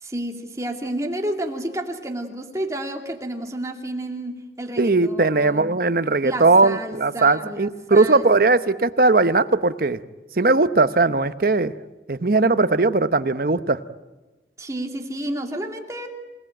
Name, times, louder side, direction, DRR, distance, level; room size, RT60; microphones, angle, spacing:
voice 1, 0.0-5.7 6.2-8.5 14.6-16.1, right 1 dB, 20° right, 2 dB, 2.6 m, -31 dB
voice 2, 4.8-10.0 10.4-11.7 12.1-13.8, right 3 dB, 55° right, 12 dB, 0.9 m, -19 dB
27.5 x 18.0 x 9.1 m, 1.1 s
head